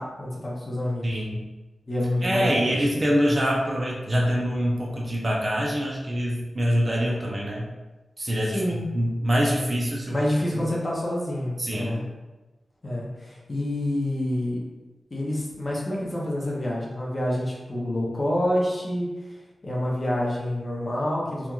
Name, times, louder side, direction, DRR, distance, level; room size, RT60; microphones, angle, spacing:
voice 1, 0.0-1.2 1.9-3.0 8.5-8.8 10.1-12.0 12.8-14.6 15.1-19.4 19.6-21.5, left 1 dB, 30° left, -4 dB, 0.6 m, -27 dB
voice 2, 1.0-1.4 2.2-7.7 8.2-10.2 10.6-10.7 11.6-11.9, equal, 30° right, -2 dB, 0.4 m, -25 dB
2.9 x 2.4 x 2.3 m, 1.1 s
wide cardioid pair, 160°, 0 cm